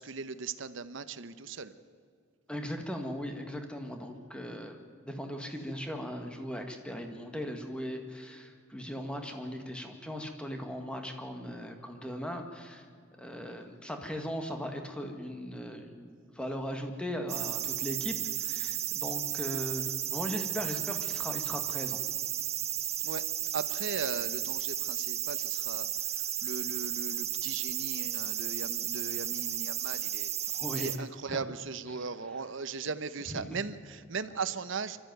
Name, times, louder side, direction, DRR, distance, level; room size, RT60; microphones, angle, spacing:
voice 1, 0.0-1.7 23.0-23.2 23.5-25.9 26.4-30.3 30.7-35.0, right 5 dB, 65° right, 12 dB, 0.9 m, -38 dB
voice 2, 2.5-4.8 5.1-12.9 13.2-22.0 30.5-31.0 31.3-31.4 31.9-32.1 33.3-33.5, equal, 5° left, 4 dB, 1.9 m, -38 dB
sound 1, 17.3-31.0, right 11 dB, 30° right, 0.9 m, -34 dB
25.0 x 13.5 x 9.3 m, 2.2 s
head